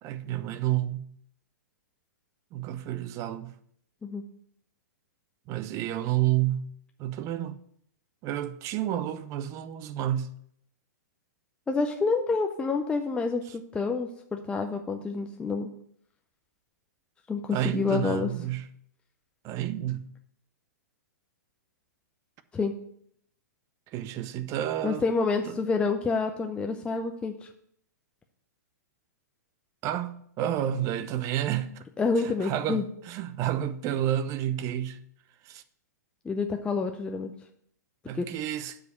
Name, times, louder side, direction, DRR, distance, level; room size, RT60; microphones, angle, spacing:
voice 1, 0.0-1.1 2.5-3.5 5.5-6.7 7.0-7.6 8.2-10.3 17.5-18.7 19.4-20.1 23.9-25.0 25.5-25.6 29.8-31.8 32.2-35.0 35.4-35.6 38.1-38.8, right 12 dB, 35° right, 0.6 m, -30 dB
voice 2, 11.7-15.7 17.3-18.3 22.5-22.7 24.8-27.5 32.0-32.8 36.2-37.3 38.1-38.3, left 4 dB, 10° left, 0.5 m, -28 dB
7.8 x 5.0 x 6.7 m
hypercardioid pair, 115°, 10 cm